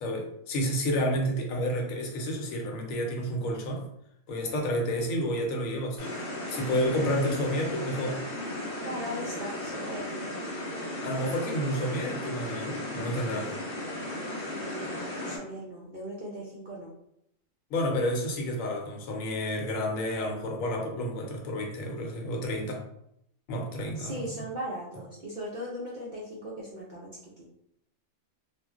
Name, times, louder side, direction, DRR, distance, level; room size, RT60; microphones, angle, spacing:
voice 1, 0.0-3.8 4.3-8.2 11.0-13.5 17.7-22.8 23.5-24.3, equal, 80° left, 1 dB, 1.0 m, -30 dB
sound 1, 6.0-15.4, left 1 dB, 50° left, 0.8 m, -36 dB
voice 2, 8.8-10.3 14.5-16.9 24.0-27.1 27.4-27.5, equal, 55° right, -6 dB, 0.5 m, -39 dB
2.4 x 2.0 x 3.5 m, 0.76 s
omnidirectional pair, 1.4 m